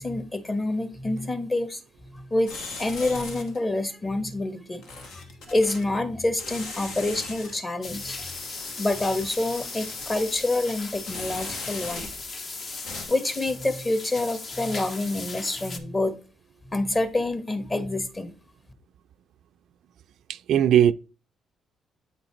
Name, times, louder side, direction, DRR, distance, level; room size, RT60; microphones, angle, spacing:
voice 1, 0.0-1.8 2.1-4.8 5.1-8.3 8.8-12.1 13.1-16.2 16.7-18.3, left 2 dB, 25° left, 1.2 m, -27 dB
sound 1, 2.5-3.6 4.8-5.8 6.4-7.5 7.9-12.3 12.6-13.1, left 3 dB, 85° left, 1.5 m, -39 dB
sound 2, 7.8-15.8, left 3 dB, 50° left, 1.0 m, -38 dB
voice 2, 20.3-20.9, right 10 dB, 75° right, 0.3 m, -19 dB
8.3 x 3.9 x 4.3 m
cardioid pair, 90°, 0 cm